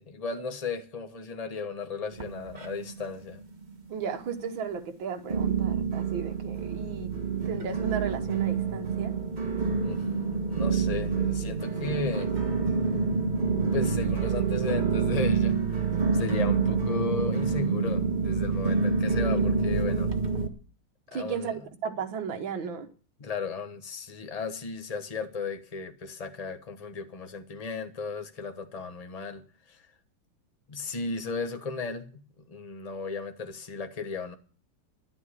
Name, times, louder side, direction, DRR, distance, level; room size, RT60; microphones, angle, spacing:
voice 1, 0.0-3.4 9.8-10.0 10.3-12.3 13.7-15.9 16.1-20.1 21.1-21.6 23.2-29.9 30.7-32.2 32.5-34.4, left 4 dB, 25° left, 0.9 m, -35 dB
sound 1, 2.1-3.1 3.3-4.0 4.5-4.6 5.3-20.5, right 5 dB, 25° right, 1.2 m, -27 dB
voice 2, 3.9-7.1 7.5-9.1 21.1-22.9, right 6 dB, 70° right, 2.0 m, -35 dB
11.5 x 8.2 x 9.9 m
omnidirectional pair, 2.3 m